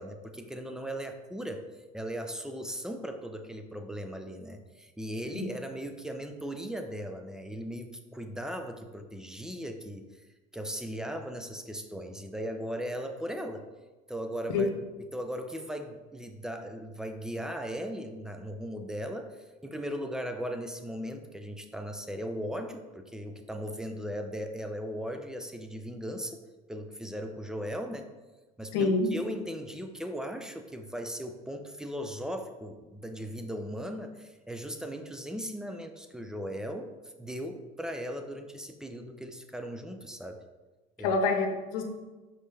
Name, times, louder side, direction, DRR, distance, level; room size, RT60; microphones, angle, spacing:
voice 1, 0.0-1.6 1.9-10.2 10.5-13.6 14.1-14.7 15.1-26.4 26.7-28.1 28.6-40.4 41.0-41.2, equal, 5° right, 6 dB, 0.6 m, -38 dB
voice 2, 28.7-29.1 41.0-41.8, left 3 dB, 85° left, 5 dB, 1.0 m, -26 dB
5.4 x 5.3 x 3.4 m, 1.2 s
supercardioid pair, 105°, 19 cm